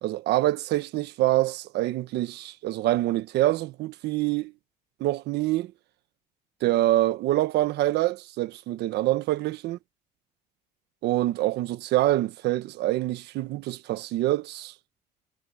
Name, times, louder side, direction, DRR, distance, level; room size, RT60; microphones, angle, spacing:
voice 1, 0.0-4.5 5.0-5.7 6.6-9.8 11.0-14.7, right 16 dB, 80° right, 1.3 m, -25 dB
cardioid pair, 110°, 17 cm